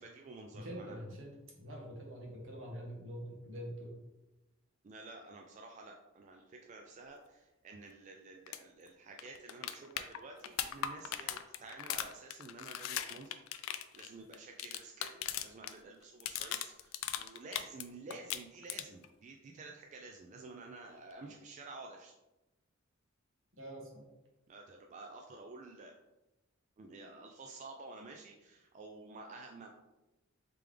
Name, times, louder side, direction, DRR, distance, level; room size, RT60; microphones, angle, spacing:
voice 1, 0.0-1.0 4.8-22.1 24.5-25.9 26.8-29.7, right 3 dB, 35° right, 1 dB, 0.3 m, -51 dB
voice 2, 0.5-4.0 21.2-21.3 23.6-24.1, equal, 75° right, -2 dB, 1.2 m, -45 dB
sound 1, 8.5-8.6 8.9-9.0 9.2-15.7 16.0-17.8 18.1-19.1 21.1-21.2, left 11 dB, 90° left, 0.3 m, -39 dB
3.4 x 3.3 x 3.4 m, 1.0 s
head